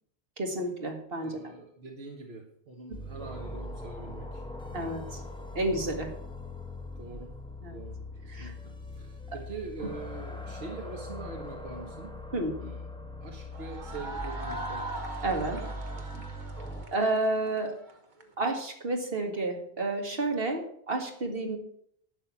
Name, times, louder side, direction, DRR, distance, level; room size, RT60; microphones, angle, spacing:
voice 1, 0.4-1.5 4.7-5.2 5.6-6.1 7.6-7.8 8.3-8.5 9.3-9.4 9.8-9.9 12.3-12.5 15.2-15.6 16.9-17.8 18.4-21.6, right 2 dB, 65° right, 3 dB, 2.2 m, -30 dB
voice 2, 1.2-4.4 4.7-4.9 7.0-7.3 7.7-12.1 12.6-12.8 13.2-14.9 15.4-16.2, right 3 dB, 85° right, 1 dB, 1.7 m, -44 dB
sound 1, 2.9-16.9, left 1 dB, 5° left, 1.3 m, -41 dB
sound 2, 13.5-18.3, right 1 dB, 50° right, 1.4 m, -40 dB
11.5 x 6.4 x 7.3 m, 0.68 s
omnidirectional pair, 1.0 m